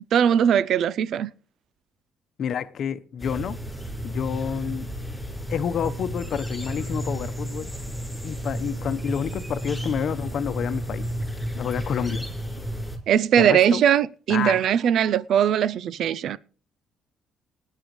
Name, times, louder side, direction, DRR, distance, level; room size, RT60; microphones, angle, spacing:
voice 1, 0.1-1.3 13.1-16.4, right 9 dB, 60° right, 0.5 m, -20 dB
voice 2, 2.4-3.6 4.0-4.9 5.5-7.7 8.2-11.0 11.6-12.3 13.4-13.8 14.3-14.6, left 8 dB, 50° left, 0.9 m, -29 dB
sound 1, 3.2-13.0, equal, 5° left, 4.7 m, -32 dB
19.5 x 10.0 x 3.1 m
cardioid pair, 130°, 0 cm